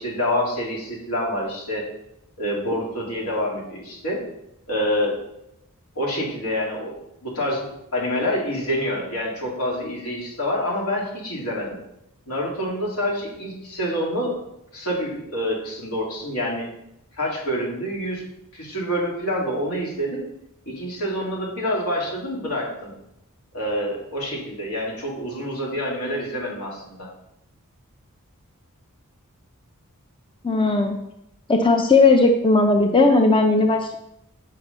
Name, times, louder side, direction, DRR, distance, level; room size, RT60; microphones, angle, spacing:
voice 1, 0.0-1.8 2.4-4.2 4.7-5.2 5.9-11.8 12.3-14.4 14.7-16.7 17.2-18.2 18.5-20.2 20.7-22.9 23.5-27.1, equal, 80° left, -3 dB, 3.0 m, -27 dB
voice 2, 30.4-31.1 31.5-34.0, left 3 dB, 20° left, 5 dB, 0.5 m, -17 dB
8.4 x 6.0 x 5.4 m, 0.83 s
head